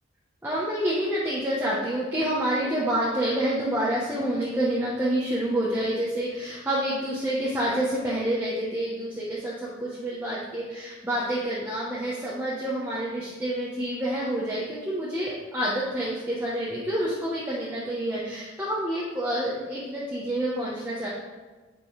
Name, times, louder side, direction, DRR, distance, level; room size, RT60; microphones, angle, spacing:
voice 1, 0.4-21.1, right 1 dB, 10° right, -8 dB, 1.0 m, -28 dB
8.9 x 5.3 x 3.3 m, 1.3 s
head